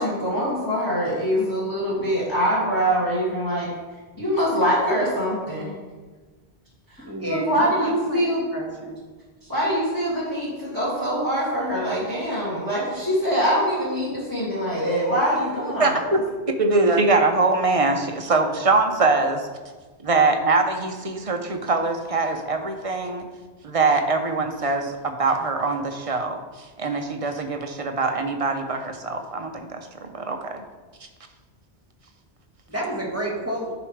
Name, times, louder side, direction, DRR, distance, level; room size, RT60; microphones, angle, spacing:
voice 1, 0.0-3.7 4.2-5.7 6.9-8.4 9.4-16.0, equal, 20° left, -7 dB, 2.4 m, -24 dB
voice 2, 7.1-8.2 8.5-9.0 32.7-33.7, right 1 dB, 15° right, -2 dB, 1.5 m, -30 dB
voice 3, 15.8-16.2 16.6-19.5 20.0-23.2 23.6-26.4 26.8-30.6, right 3 dB, 35° right, 5 dB, 0.7 m, -23 dB
11.0 x 5.0 x 3.3 m, 1.3 s
omnidirectional pair, 1.1 m